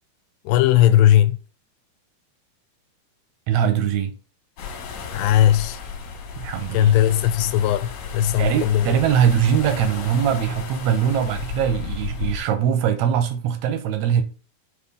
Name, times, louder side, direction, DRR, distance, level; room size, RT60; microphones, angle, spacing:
voice 1, 0.5-1.4 5.1-5.8 6.7-9.0, left 11 dB, 85° left, 2.3 m, -18 dB
voice 2, 3.5-4.1 6.4-7.0 8.4-14.2, right 9 dB, 75° right, 1.6 m, -21 dB
sound 1, 4.6-12.4, left 5 dB, 65° left, 2.4 m, -33 dB
6.4 x 2.9 x 5.4 m
omnidirectional pair, 4.0 m